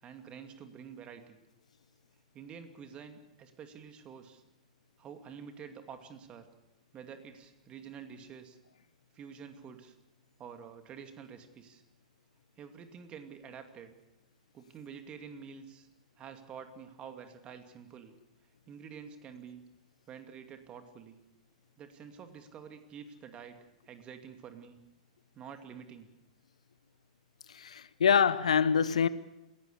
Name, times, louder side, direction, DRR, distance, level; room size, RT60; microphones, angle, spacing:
voice 1, 0.0-1.4 2.3-4.4 5.0-6.5 6.9-8.6 9.1-10.0 10.4-11.8 12.6-14.0 14.5-15.9 16.2-18.2 18.7-19.6 20.1-21.2 21.8-23.6 23.8-24.8 25.3-26.1, right 7 dB, 25° right, 2.5 m, -48 dB
voice 2, 27.5-29.1, left 7 dB, 70° left, 0.8 m, -25 dB
27.5 x 16.0 x 6.9 m
figure-of-eight pair, 100°, 4 cm